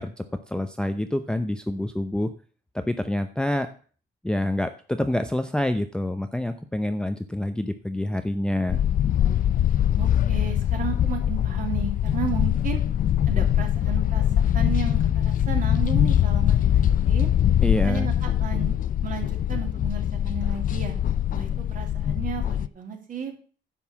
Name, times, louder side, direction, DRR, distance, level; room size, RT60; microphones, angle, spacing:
voice 1, 0.0-2.3 2.7-3.7 4.2-8.8 17.6-18.1, left 1 dB, 5° left, 8 dB, 0.6 m, -27 dB
sound 1, 8.7-22.7, left 10 dB, 45° left, 0.5 m, -23 dB
voice 2, 10.0-12.8 13.2-17.3 17.8-18.7 19.0-20.9 21.3-23.3, right 6 dB, 45° right, 3 dB, 2.8 m, -34 dB
10.5 x 5.5 x 7.2 m, 0.41 s
cardioid pair, 135°, 19 cm